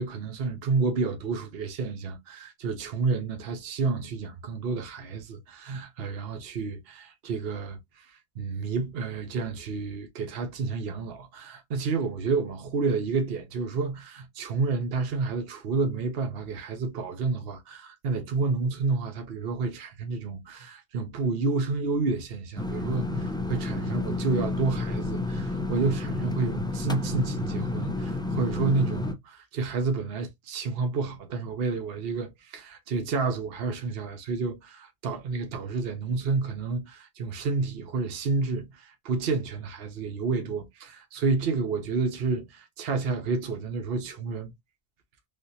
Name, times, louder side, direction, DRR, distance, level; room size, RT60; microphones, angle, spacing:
voice 1, 0.0-8.0 8.4-44.5, right 4 dB, 70° right, 1.0 m, -30 dB
sound 1, 22.6-29.1, left 2 dB, 5° left, 0.3 m, -30 dB
3.4 x 2.9 x 2.7 m
omnidirectional pair, 1.1 m